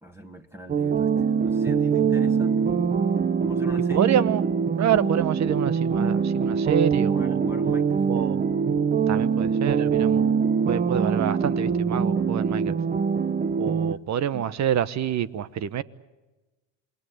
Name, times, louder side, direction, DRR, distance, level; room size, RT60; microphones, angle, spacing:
voice 1, 0.0-2.9 3.4-4.1 6.9-8.1 13.9-14.0 14.3-14.5, equal, 5° right, 1.8 m, -42 dB
sound 1, 0.7-13.9, right 6 dB, 20° right, 0.8 m, -23 dB
voice 2, 3.9-4.4 4.8-7.4 8.1-8.5 9.1-10.3 10.7-12.7 13.6-15.8, right 9 dB, 40° right, 1.1 m, -27 dB
27.5 x 20.5 x 7.9 m
supercardioid pair, 95°, 41 cm